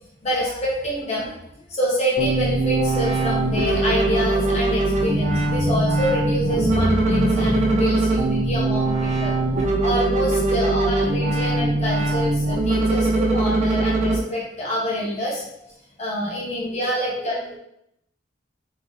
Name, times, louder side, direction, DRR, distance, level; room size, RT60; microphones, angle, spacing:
voice 1, 0.2-15.4 16.0-17.3, equal, 40° left, -5 dB, 1.0 m, -26 dB
sound 1, 2.2-14.2, right 2 dB, 40° right, 0.7 m, -21 dB
voice 2, 10.0-10.4 16.6-17.6, right 1 dB, 5° left, -7 dB, 1.3 m, -40 dB
3.9 x 3.6 x 3.1 m, 0.77 s
head